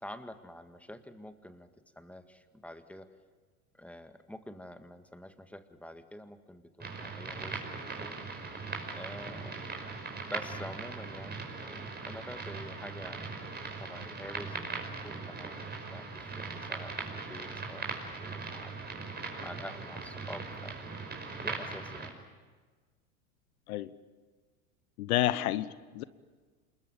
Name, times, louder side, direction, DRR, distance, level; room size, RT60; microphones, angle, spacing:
voice 1, 0.0-1.7 2.0-3.1 3.7-8.2 8.9-9.7 10.2-13.3 13.8-17.9 18.2-18.9 19.4-20.8 21.4-22.2, left 1 dB, 5° left, 8 dB, 1.9 m, -47 dB
sound 1, 6.8-22.1, right 4 dB, 20° right, 5.5 m, -40 dB
voice 2, 25.0-26.0, left 14 dB, 70° left, 16 dB, 1.2 m, -30 dB
27.5 x 21.5 x 9.1 m, 1.4 s
hypercardioid pair, 90°, 44 cm